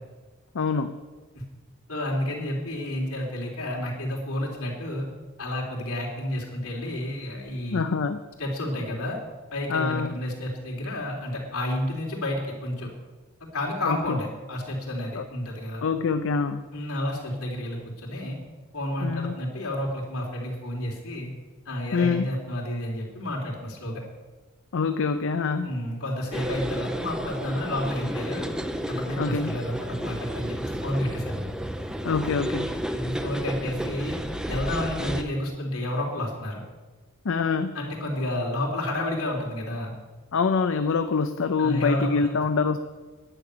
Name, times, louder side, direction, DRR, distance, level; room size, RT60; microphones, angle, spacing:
voice 1, 0.5-1.0 7.7-8.2 9.7-10.1 13.8-14.2 15.1-15.2 15.8-16.6 19.0-19.4 21.9-22.3 24.7-25.7 29.2-29.6 32.0-32.8 37.2-37.8 40.3-42.8, left 5 dB, 65° left, 9 dB, 0.6 m, -25 dB
voice 2, 1.9-5.1 5.4-7.8 8.4-9.2 9.5-12.9 13.5-15.8 16.7-18.4 18.7-21.3 21.6-24.0 25.6-28.5 28.9-31.3 32.9-34.2 34.5-36.6 37.7-39.9 41.6-42.3, left 1 dB, 80° left, -2 dB, 3.3 m, -30 dB
sound 1, 26.3-35.2, equal, 5° right, 0.8 m, -32 dB
10.5 x 9.6 x 6.7 m, 1.3 s
head